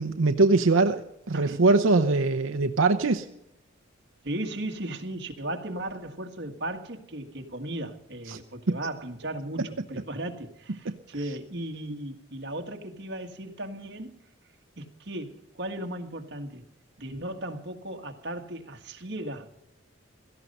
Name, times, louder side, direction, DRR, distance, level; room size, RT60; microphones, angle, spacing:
voice 1, 0.0-3.3 8.3-8.4 8.7-8.8 10.9-11.0, right 3 dB, 85° right, 0.8 m, -22 dB
voice 2, 1.3-1.6 4.2-14.2 14.8-16.6 17.0-19.5, right 1 dB, 55° right, 1.7 m, -36 dB
17.0 x 14.5 x 5.5 m
head